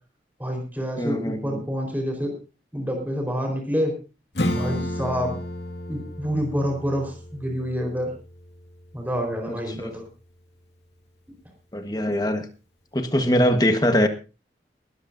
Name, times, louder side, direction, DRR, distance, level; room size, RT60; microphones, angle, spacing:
voice 1, 0.4-2.3 2.7-3.9 4.5-5.3 5.9-8.1 8.9-10.0, equal, 10° right, 1 dB, 4.3 m, -27 dB
voice 2, 1.0-1.6 11.7-12.5 12.9-14.1, equal, 20° left, 7 dB, 1.4 m, -22 dB
Acoustic guitar / Strum, 4.3-9.6, left 1 dB, 75° left, 2.1 m, -32 dB
19.5 x 13.5 x 2.7 m, 0.32 s
head